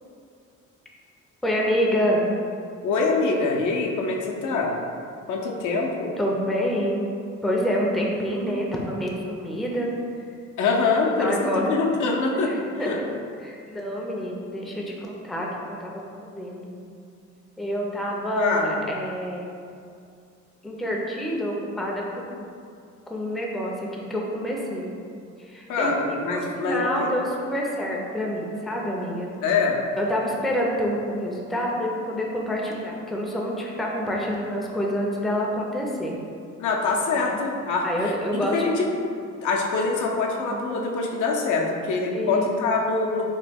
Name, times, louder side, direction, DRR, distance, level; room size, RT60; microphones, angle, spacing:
voice 1, 1.4-2.3 6.2-7.1 7.4-9.9 11.2-11.7 12.3-13.1 13.4-16.0 16.3-16.7 17.6-19.4 20.6-22.4 23.1-25.0 25.4-29.3 30.0-36.2 37.2-37.4 37.8-38.6 40.5-40.6 42.1-42.4, equal, ahead, -2 dB, 0.4 m, -27 dB
voice 2, 2.8-4.7 5.3-6.1 10.6-11.3 11.7-12.5 12.8-13.0 18.4-18.9 25.7-27.1 29.4-29.8 36.6-38.9 39.4-43.3, left 4 dB, 75° left, -1 dB, 0.5 m, -24 dB
3.0 x 2.2 x 3.4 m, 2.4 s
cardioid pair, 90°, 30 cm